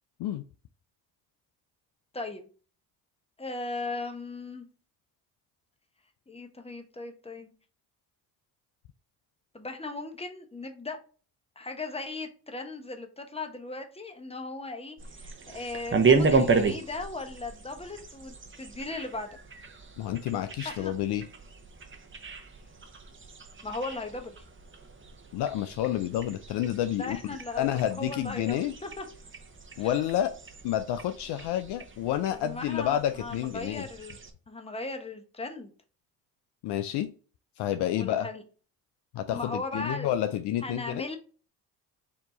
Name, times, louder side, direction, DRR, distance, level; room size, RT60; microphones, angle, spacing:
voice 1, 2.1-2.5 3.4-4.7 6.3-7.5 9.5-11.0 11.6-19.3 20.6-20.9 23.6-24.4 27.0-29.0 29.8-30.1 32.3-34.2 34.5-35.7 37.9-38.4 39.3-40.1 40.6-41.2, left 2 dB, 15° left, 5 dB, 1.0 m, -38 dB
sound 1, 15.0-34.3, right 4 dB, 25° right, 0.9 m, -33 dB
voice 2, 20.0-21.2 25.3-28.7 29.8-30.3 30.6-33.9 36.6-37.1 37.6-38.3 39.1-41.0, left 11 dB, 60° left, 10 dB, 0.5 m, -29 dB
4.4 x 2.8 x 3.8 m, 0.39 s
hypercardioid pair, 50°, 45 cm